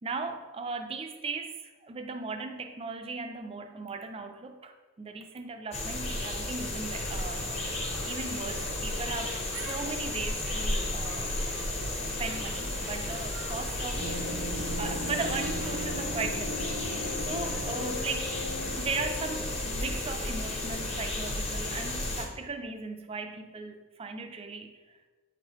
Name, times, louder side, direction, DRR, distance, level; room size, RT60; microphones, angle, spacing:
voice 1, 0.0-11.3 12.2-14.5 14.8-18.3 18.8-25.0, right 4 dB, 25° right, 6 dB, 0.4 m, -38 dB
sound 1, 5.7-22.3, left 2 dB, 30° left, 0.8 m, -33 dB
sound 2, 6.6-15.9, right 2 dB, 85° right, 1.0 m, -47 dB
sound 3, 14.0-19.7, equal, 80° left, 1.5 m, -37 dB
8.9 x 3.9 x 3.0 m, 1.3 s
head